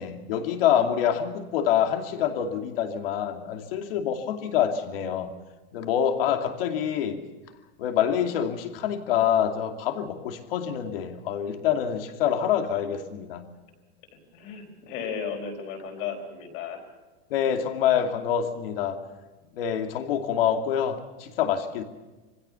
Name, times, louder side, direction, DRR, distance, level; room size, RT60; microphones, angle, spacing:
voice 1, 0.0-5.3 5.7-7.2 7.8-13.4 17.3-19.0 19.5-21.8, left 9 dB, 60° left, 6 dB, 2.7 m, -26 dB
voice 2, 14.1-16.8, left 6 dB, 40° left, 3 dB, 4.7 m, -35 dB
24.0 x 16.0 x 7.0 m, 1.2 s
supercardioid pair, 175°, 32 cm